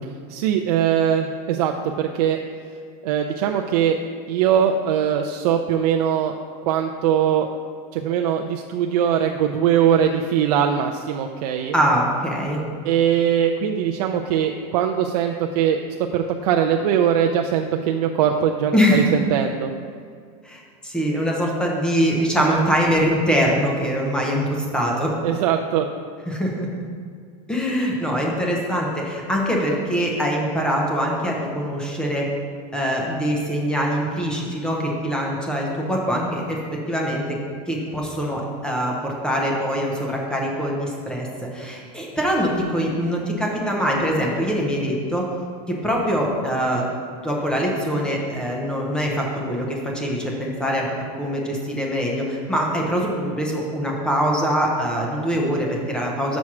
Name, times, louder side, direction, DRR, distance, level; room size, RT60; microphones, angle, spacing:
voice 1, 0.3-2.4 3.0-4.0 4.3-6.3 6.6-7.5 7.9-11.7 12.8-15.8 16.1-19.7 25.2-25.9, right 9 dB, 75° right, 4 dB, 0.4 m, -21 dB
voice 2, 11.7-12.6 18.7-19.1 20.4-25.2 26.3-26.8 27.5-32.3 32.7-37.4 37.7-45.3 45.7-46.9 47.2-50.9 51.2-56.4, equal, 5° left, -2 dB, 0.8 m, -23 dB
6.2 x 4.3 x 6.0 m, 2.1 s
supercardioid pair, 170°, 20 cm